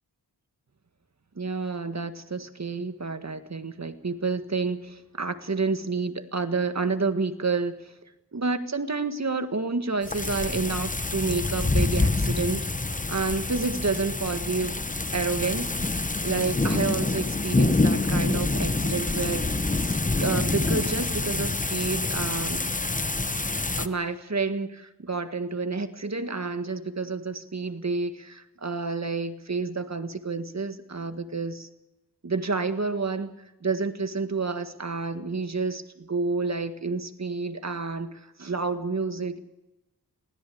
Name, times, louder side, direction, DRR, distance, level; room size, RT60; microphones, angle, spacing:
voice 1, 1.4-8.0 8.3-12.7 13.1-14.8 15.1-16.0 16.2-19.5 19.8-22.7 23.8-31.7 32.2-33.3 33.6-39.4, right 4 dB, 40° right, 10 dB, 1.7 m, -29 dB
sound 1, 10.0-23.9, left 2 dB, 20° left, 1.0 m, -26 dB
22.5 x 16.5 x 8.6 m, 0.98 s
wide cardioid pair, 60°, 40 cm